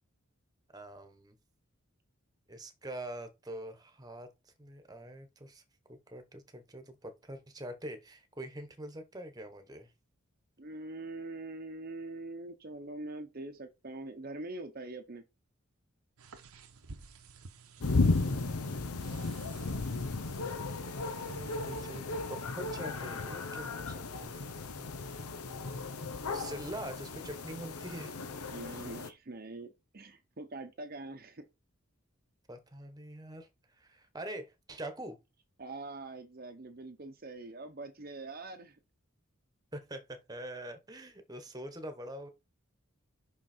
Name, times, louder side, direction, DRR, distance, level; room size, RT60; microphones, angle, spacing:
voice 1, 0.7-1.4 2.5-5.6 5.9-9.9 21.2-24.4 24.8-24.9 25.5-25.9 26.3-28.2 32.5-33.5 33.8-35.2 39.7-42.3, right 1 dB, 15° right, 1.1 m, -44 dB
voice 2, 10.6-15.2 28.5-31.5 35.6-38.8, right 2 dB, 40° right, 0.8 m, -43 dB
sound 1, 16.2-21.8, right 4 dB, 85° right, 1.1 m, -54 dB
sound 2, 17.8-29.1, left 3 dB, 90° left, 0.9 m, -35 dB
6.1 x 5.9 x 4.4 m
head